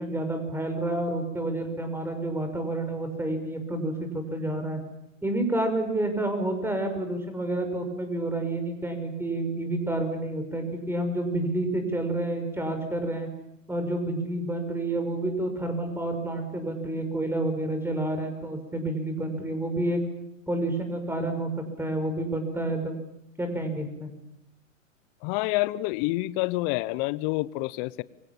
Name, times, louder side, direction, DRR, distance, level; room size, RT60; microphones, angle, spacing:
voice 1, 0.0-4.8 5.2-13.3 13.7-20.0 20.5-21.5 21.8-23.0 23.4-24.1, right 1 dB, 5° right, 7 dB, 5.7 m, -29 dB
voice 2, 25.2-28.0, left 19 dB, 40° left, 19 dB, 1.0 m, -28 dB
28.5 x 24.5 x 7.4 m, 0.81 s
hypercardioid pair, 120°, 40 cm